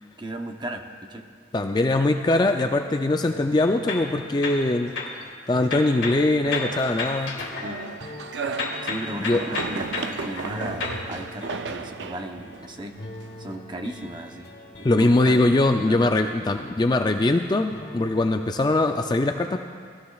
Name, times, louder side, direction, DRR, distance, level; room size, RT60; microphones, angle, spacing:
voice 1, 0.2-1.3 7.6-7.8 8.8-13.0 13.4-14.5 14.8-15.4 15.8-16.4, right 1 dB, 25° right, 4 dB, 0.7 m, -36 dB
voice 2, 1.5-4.9 5.5-7.4 9.2-9.4 14.8-19.6, left 2 dB, 20° left, 5 dB, 0.3 m, -22 dB
sound 1, 3.3-18.5, left 1 dB, 60° left, 1.1 m, -45 dB
sound 2, 3.6-5.2 5.6-8.3 8.6-11.0, left 3 dB, 85° left, 1.8 m, -33 dB
sound 3, 6.5-13.5, right 4 dB, 70° right, 0.5 m, -35 dB
19.0 x 13.5 x 2.4 m, 2.1 s
head